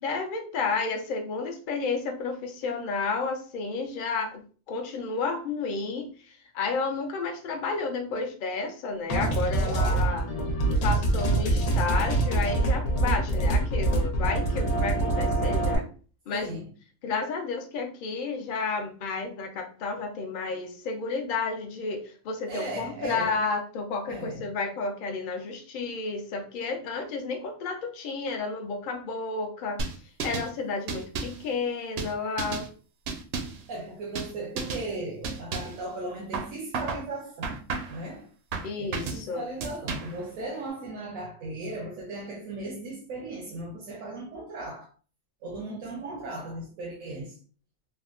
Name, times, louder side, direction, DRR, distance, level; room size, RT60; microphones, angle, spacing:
voice 1, 0.0-4.4 4.7-10.2 10.8-15.9 16.3-16.5 17.0-29.8 30.2-32.7 38.6-39.4, left 4 dB, 55° left, 0.6 m, -31 dB
sound 1, 9.1-15.7, right 2 dB, 90° left, 1.1 m, -25 dB
voice 2, 9.5-10.1 16.3-16.7 22.5-23.4 24.1-24.5 33.7-38.3 38.8-44.9 45.4-47.4, right 2 dB, 90° right, 1.2 m, -37 dB
sound 2, 29.8-30.5 30.9-31.4 32.0-32.7 33.1-33.6 34.2-34.3 34.6-34.9 35.2-35.8 36.3-37.1 37.4-38.0 38.5-39.2 39.6-40.2, right 4 dB, 65° right, 0.7 m, -33 dB
3.4 x 2.1 x 2.4 m
omnidirectional pair, 1.4 m